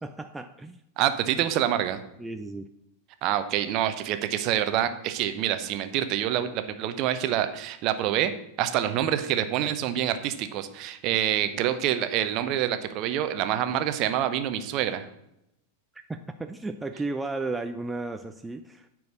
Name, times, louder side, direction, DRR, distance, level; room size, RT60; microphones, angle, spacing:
voice 1, 0.0-0.8 2.2-2.7 16.1-18.9, right 3 dB, 10° right, 7 dB, 0.4 m, -34 dB
voice 2, 1.0-2.0 3.2-8.3 8.6-15.1, right 11 dB, 40° right, 10 dB, 0.8 m, -26 dB
9.4 x 4.6 x 6.3 m, 0.82 s
figure-of-eight pair, 90°, 0 cm